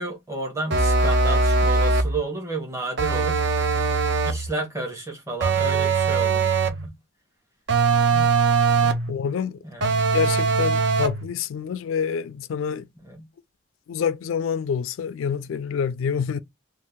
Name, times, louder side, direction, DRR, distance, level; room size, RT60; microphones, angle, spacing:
voice 1, 0.0-3.4 4.2-7.0 9.6-10.0 13.0-13.3, right 2 dB, 15° right, 1.0 m, -32 dB
sound 1, 0.7-2.2 3.0-4.5 5.4-6.9 7.7-9.1 9.8-11.3, right 4 dB, 60° right, 0.5 m, -21 dB
voice 2, 9.1-9.6 10.1-12.9 13.9-16.4, left 7 dB, 80° left, 0.3 m, -27 dB
2.6 x 2.4 x 3.5 m
head